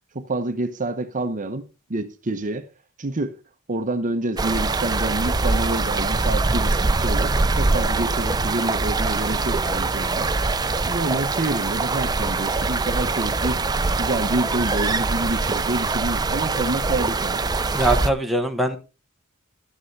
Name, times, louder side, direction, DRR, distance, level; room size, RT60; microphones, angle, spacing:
voice 1, 0.1-2.7 3.0-3.3 3.7-10.3 10.8-13.6 14.0-17.4, right 2 dB, 35° right, 0.9 m, -27 dB
sound 1, 4.4-18.1, right 3 dB, 20° right, 0.5 m, -23 dB
voice 2, 17.7-18.8, right 1 dB, ahead, 1.2 m, -22 dB
12.5 x 10.5 x 3.3 m
head